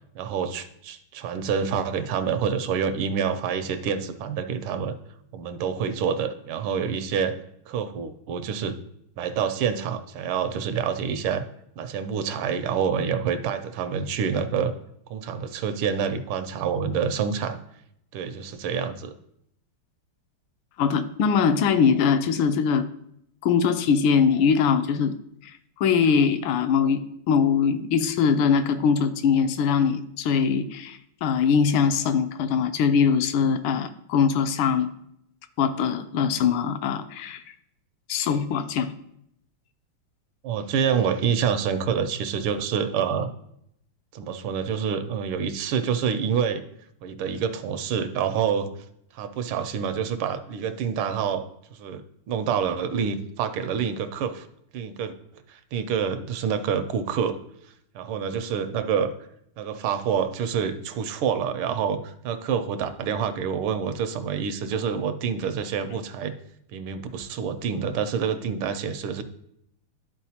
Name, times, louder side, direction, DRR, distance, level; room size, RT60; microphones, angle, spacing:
voice 1, 0.1-4.9 5.3-7.4 7.7-8.7 9.2-11.4 11.8-14.7 15.1-17.6 18.1-19.1 40.4-43.3 44.1-46.6 47.0-48.7 49.1-51.4 51.7-54.5 54.7-55.1 55.5-57.4 57.9-59.1 59.6-66.3 66.7-69.2, right 7 dB, 80° right, 10 dB, 1.5 m, -27 dB
voice 2, 20.8-22.8 23.4-25.1 25.4-27.0 27.3-34.9 35.6-37.4 38.1-38.9, left 6 dB, 75° left, 10 dB, 1.3 m, -22 dB
12.0 x 4.4 x 2.8 m, 0.73 s
omnidirectional pair, 2.4 m